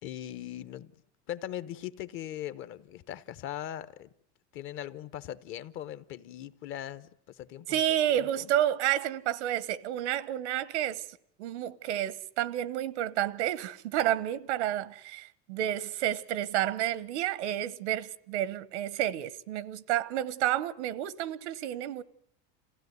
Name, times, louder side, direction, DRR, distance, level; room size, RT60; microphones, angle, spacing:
voice 1, 0.0-0.9 1.3-4.1 4.5-7.8 8.1-8.5, left 11 dB, 40° left, 0.9 m, -40 dB
voice 2, 7.7-11.0 11.4-22.0, right 12 dB, 90° right, 1.1 m, -30 dB
27.5 x 16.0 x 9.4 m
supercardioid pair, 150°, 33 cm